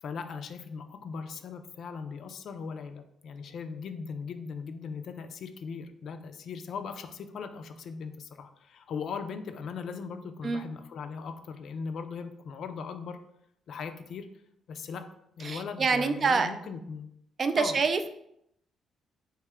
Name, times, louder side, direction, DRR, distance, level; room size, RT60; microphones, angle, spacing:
voice 1, 0.0-13.2 13.7-14.3 14.7-15.1 15.4-17.1 17.6-17.8, left 5 dB, 65° left, 7 dB, 0.3 m, -39 dB
voice 2, 15.4-16.5 17.4-18.1, right 4 dB, 45° right, 9 dB, 0.3 m, -26 dB
3.2 x 2.9 x 3.5 m, 0.75 s
cardioid pair, 90°, 0 cm